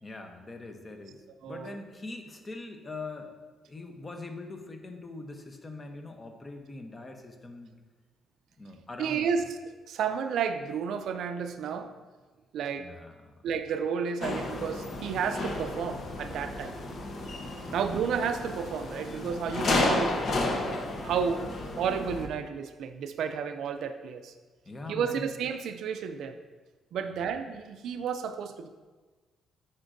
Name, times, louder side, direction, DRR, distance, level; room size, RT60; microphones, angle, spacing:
voice 1, 0.0-3.3 3.7-7.8 8.6-9.3 12.8-13.5 17.6-17.9 24.7-25.3 27.0-27.2, left 3 dB, 30° left, 5 dB, 0.8 m, -42 dB
voice 2, 1.4-1.8 9.0-11.9 12.5-12.9 13.4-16.7 17.7-20.2 21.0-24.3 24.9-26.4 26.9-28.7, right 6 dB, 75° right, 8 dB, 0.4 m, -31 dB
sound 1, 14.2-22.3, left 2 dB, 55° left, 0.8 m, -32 dB
9.5 x 4.3 x 2.6 m, 1.3 s
cardioid pair, 90°, 0 cm